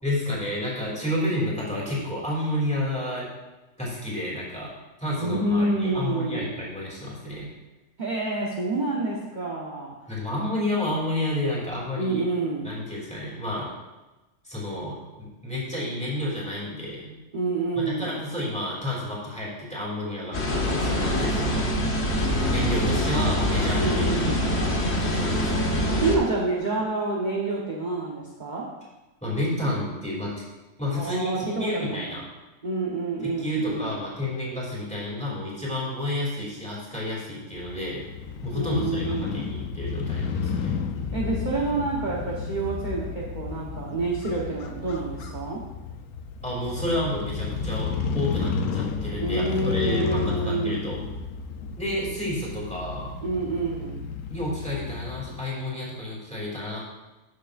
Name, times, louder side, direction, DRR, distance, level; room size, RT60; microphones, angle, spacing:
voice 1, 0.0-3.2 3.8-4.7 5.0-7.5 10.1-12.2 12.6-13.7 14.4-17.2 17.7-20.4 20.7-21.7 22.4-25.9 29.2-30.3 30.8-32.2 33.2-38.0 38.4-40.8 46.4-51.0 51.8-53.1 54.3-56.8, left 1 dB, 5° left, -6 dB, 2.6 m, -30 dB
voice 2, 5.1-6.5 8.0-9.9 12.0-12.7 17.3-18.1 23.8-24.4 26.0-28.7 31.0-32.1 32.6-33.9 38.5-39.4 41.1-45.6 49.2-50.8 53.2-54.0, right 2 dB, 35° right, -5 dB, 1.1 m, -28 dB
sound 1, 20.3-26.2, equal, 50° left, 1.4 m, -24 dB
Crow / Motorcycle, 37.5-55.4, left 5 dB, 85° left, 1.1 m, -32 dB
12.5 x 6.5 x 2.5 m, 1.1 s
omnidirectional pair, 1.5 m